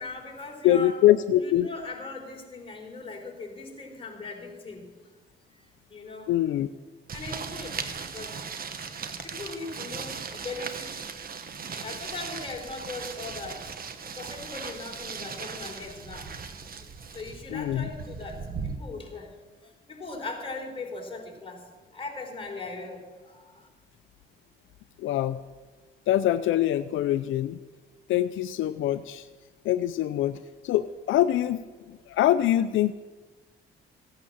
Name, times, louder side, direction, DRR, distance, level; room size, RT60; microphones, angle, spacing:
voice 1, 0.0-0.9 1.4-4.9 5.9-6.3 7.1-7.8 8.1-8.4 9.2-11.1 11.6-13.7 14.0-16.3 16.8-16.9 17.1-19.3 19.6-21.7 21.9-23.7, left 3 dB, 25° left, 1 dB, 3.9 m, -39 dB
voice 2, 0.6-1.7 6.3-6.7 17.5-17.9 25.0-25.4 26.1-27.6 28.1-29.3 29.6-30.4 30.6-31.6 31.9-32.9, left 12 dB, 80° left, 12 dB, 0.5 m, -24 dB
sound 1, 7.1-18.8, right 5 dB, 50° right, 1.3 m, -38 dB
16.0 x 9.0 x 7.3 m, 1.3 s
cardioid pair, 90°, 20 cm